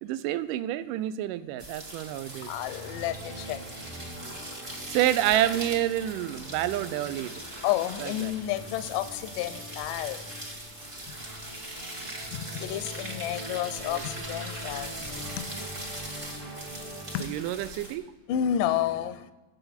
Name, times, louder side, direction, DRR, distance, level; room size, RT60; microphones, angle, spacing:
voice 1, 0.0-2.5 4.9-7.4 8.0-8.3 11.8-12.0 13.9-14.0 17.2-18.1, right 13 dB, 80° right, 15 dB, 2.0 m, -28 dB
sound 1, 1.6-17.9, right 1 dB, 30° right, 1.0 m, -41 dB
sound 2, 1.9-17.2, right 1 dB, 60° right, 5.8 m, -44 dB
voice 2, 2.4-3.7 7.6-10.3 11.1-11.2 12.3-15.4 17.1-17.5 18.3-19.3, left 11 dB, 80° left, 11 dB, 2.1 m, -31 dB
18.5 x 8.0 x 4.3 m, 1.2 s
omnidirectional pair, 4.1 m